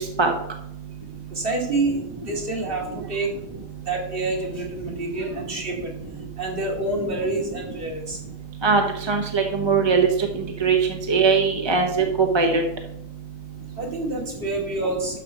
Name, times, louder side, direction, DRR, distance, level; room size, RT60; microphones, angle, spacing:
voice 1, 1.3-2.0 2.3-3.3 3.9-5.8 6.4-8.2 13.8-15.2, right 2 dB, 40° right, -1 dB, 2.6 m, -27 dB
voice 2, 9.1-10.1 10.6-10.8 11.1-12.6, right 5 dB, 25° right, 3 dB, 0.8 m, -20 dB
12.0 x 4.7 x 6.3 m, 0.81 s
omnidirectional pair, 1.4 m